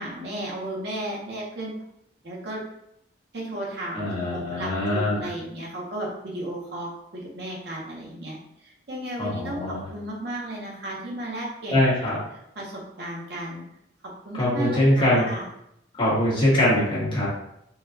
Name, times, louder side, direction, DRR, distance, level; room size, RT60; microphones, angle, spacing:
voice 1, 0.0-1.7 2.2-2.6 3.3-11.8 12.6-13.6 14.2-15.4, right 1 dB, 65° right, -3 dB, 0.8 m, -34 dB
voice 2, 3.9-5.3 9.2-9.8 11.7-12.2 14.4-15.2 15.9-17.2, left 1 dB, 25° left, -8 dB, 1.2 m, -22 dB
3.8 x 2.2 x 2.7 m, 0.78 s
head